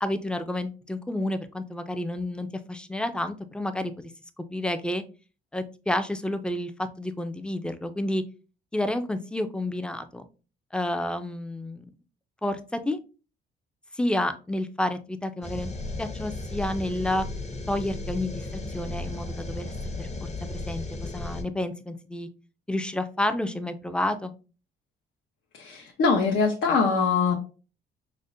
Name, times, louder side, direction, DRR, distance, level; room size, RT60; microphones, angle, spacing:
voice 1, 0.0-4.1 4.5-5.0 5.5-8.2 8.7-10.2 10.7-11.9 12.4-13.0 13.9-15.7 16.0-17.2 17.7-20.8 21.1-22.3 22.7-24.3, left 1 dB, 5° left, 9 dB, 0.4 m, -30 dB
sound 1, 15.4-21.4, left 2 dB, 35° left, 0.7 m, -35 dB
voice 2, 25.6-27.3, left 5 dB, 75° left, 0 dB, 0.7 m, -23 dB
5.0 x 2.1 x 2.5 m, 0.34 s
cardioid pair, 90°, 20 cm